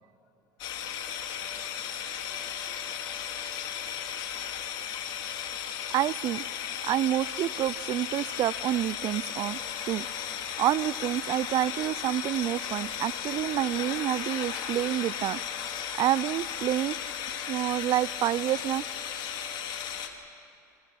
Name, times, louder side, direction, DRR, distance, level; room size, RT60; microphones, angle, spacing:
sound 1, 0.6-20.1, left 9 dB, 55° left, 2.5 m, -35 dB
voice 1, 2.3-2.9 3.3-3.8 4.8-6.1 19.5-19.6, left 11 dB, 85° left, 10 dB, 1.6 m, -64 dB
voice 2, 5.9-6.4 6.8-9.6 9.9-10.1 10.6-15.4 16.0-17.0 17.5-18.8, right 13 dB, 50° right, 22 dB, 0.5 m, -28 dB
29.5 x 26.0 x 5.9 m, 2.7 s
hypercardioid pair, 85°, 9 cm